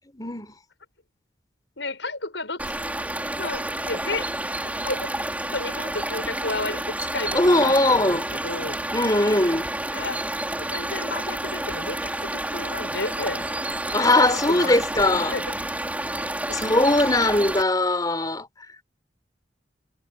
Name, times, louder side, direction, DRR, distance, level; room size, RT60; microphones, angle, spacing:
voice 1, 0.1-0.5 7.3-8.2 8.9-9.7 13.9-15.3 16.5-18.5, left 2 dB, 20° left, 4.5 m, -20 dB
voice 2, 1.8-2.6 3.4-5.1 5.5-8.8 9.9-10.3 10.6-13.5 14.3-15.6 16.5-16.6, left 3 dB, 75° left, 6.9 m, -32 dB
sound 1, 2.6-17.6, right 1 dB, 10° right, 6.0 m, -30 dB
head